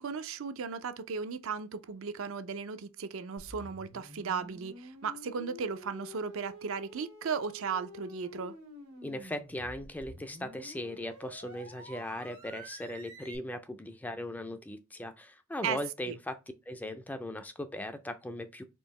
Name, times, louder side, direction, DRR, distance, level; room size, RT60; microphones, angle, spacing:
voice 1, 0.0-8.5 15.6-15.8 16.1-16.2, right 6 dB, 60° right, 0.4 m, -36 dB
sound 1, 3.4-13.4, equal, 85° right, 1.5 m, -49 dB
voice 2, 9.0-16.4 16.7-18.6, left 1 dB, 5° left, 0.3 m, -38 dB
4.5 x 2.8 x 3.1 m
head